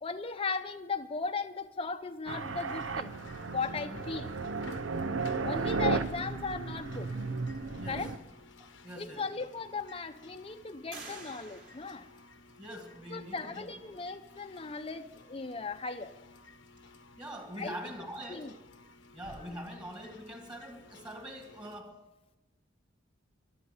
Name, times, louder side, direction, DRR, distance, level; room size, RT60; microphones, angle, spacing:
voice 1, 0.0-3.1 3.5-4.4 5.4-7.2 7.9-8.1 9.0-12.1 13.1-16.1 17.6-17.8 18.3-18.5, left 4 dB, 30° left, 0.6 m, -37 dB
sound 1, 2.3-21.8, left 3 dB, 75° left, 1.0 m, -55 dB
sound 2, 2.3-8.2, right 4 dB, 90° right, 0.8 m, -34 dB
voice 2, 7.8-8.2 8.6-9.2 12.6-13.7 17.2-18.6 19.1-22.0, equal, 20° right, 2.2 m, -44 dB
sound 3, 8.6-8.7 9.3-10.0 10.9-12.9, right 4 dB, 45° right, 3.2 m, -50 dB
13.5 x 11.5 x 7.8 m
head